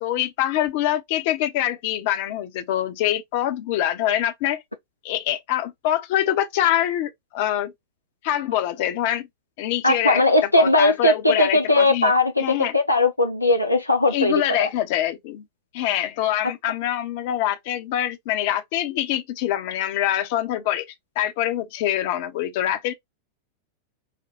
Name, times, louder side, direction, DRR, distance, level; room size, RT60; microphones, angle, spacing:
voice 1, 0.0-4.6 5.0-7.7 8.2-9.3 9.6-10.2 10.6-12.1 12.4-12.7 14.1-15.5 15.7-20.9 21.2-22.9, left 12 dB, 50° left, 0.8 m, -24 dB
voice 2, 9.8-14.7, left 2 dB, 85° left, 0.5 m, -19 dB
5.7 x 2.2 x 2.8 m
figure-of-eight pair, 90°, 0 cm